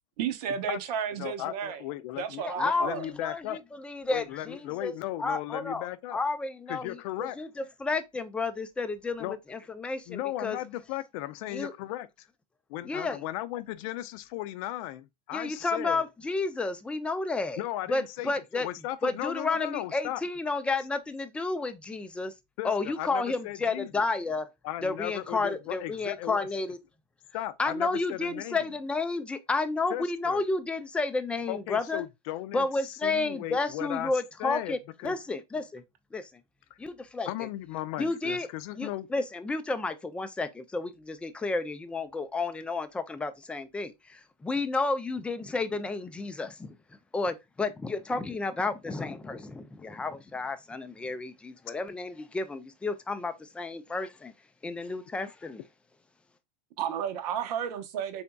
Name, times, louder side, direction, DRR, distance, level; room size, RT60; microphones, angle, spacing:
voice 1, 0.2-1.8 2.2-3.1 56.8-58.2, right 8 dB, 70° right, 0.8 m, -32 dB
voice 2, 1.2-3.6 4.1-6.2 6.7-7.4 9.2-9.4 10.1-12.3 12.7-16.0 17.6-20.2 22.6-24.1 24.6-26.5 27.3-28.7 29.9-30.4 31.5-34.1 34.4-35.1 37.3-39.1, left 14 dB, 60° left, 0.5 m, -36 dB
voice 3, 2.4-4.9 5.2-5.9 6.1-7.5 7.8-10.6 11.5-11.7 12.8-13.2 15.3-17.6 17.9-18.7 19.0-22.3 22.6-24.5 24.8-26.8 27.6-32.0 32.5-34.8 35.0-35.8 36.1-36.3 36.8-37.3 38.0-38.5 38.7-46.8 47.1-54.3 54.6-55.6, left 3 dB, 5° left, 0.3 m, -31 dB
4.0 x 3.4 x 2.2 m
supercardioid pair, 145°, 21 cm